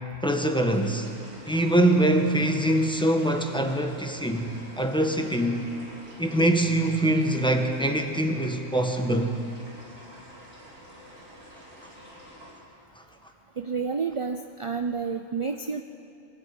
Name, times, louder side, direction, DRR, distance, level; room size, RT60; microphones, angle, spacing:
voice 1, 0.2-1.1 1.5-5.7 6.2-9.3, right 1 dB, 5° left, 4 dB, 1.3 m, -24 dB
sound 1, 0.7-12.5, equal, 80° right, 4.7 m, -48 dB
voice 2, 13.6-15.8, right 5 dB, 40° right, 6 dB, 0.4 m, -30 dB
22.5 x 15.5 x 8.7 m, 2.5 s
omnidirectional pair, 1.4 m